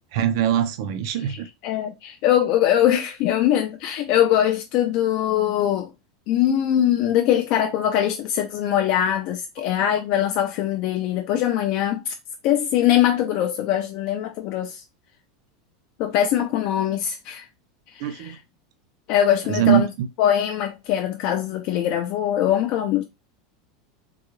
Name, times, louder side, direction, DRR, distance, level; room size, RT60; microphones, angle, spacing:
voice 1, 0.1-1.5 18.0-18.4 19.5-20.1, right 10 dB, 50° right, 0.5 m, -22 dB
voice 2, 1.6-5.9 6.3-12.1 12.4-14.8 16.0-17.5 17.9-18.4 19.1-19.9 20.2-23.0, left 11 dB, 35° left, 0.4 m, -22 dB
3.7 x 2.2 x 3.0 m
supercardioid pair, 175°, 3 cm